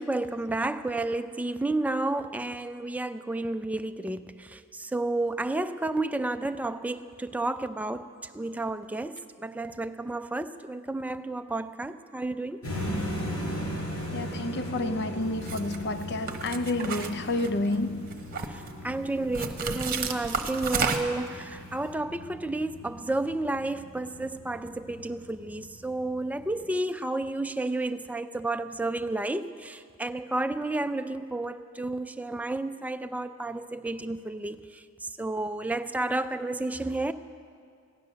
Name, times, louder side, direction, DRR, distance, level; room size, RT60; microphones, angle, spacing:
voice 1, 0.0-12.6 18.5-37.1, right 2 dB, 5° right, 0.4 m, -31 dB
sound 1, 12.6-26.6, equal, 90° left, 4.9 m, -38 dB
voice 2, 14.1-18.1, left 2 dB, 50° left, 0.6 m, -30 dB
sound 2, 15.4-15.8 16.3-17.7 18.1-18.7 19.3-21.3, right 5 dB, 40° right, 1.0 m, -31 dB
15.5 x 11.0 x 6.7 m
head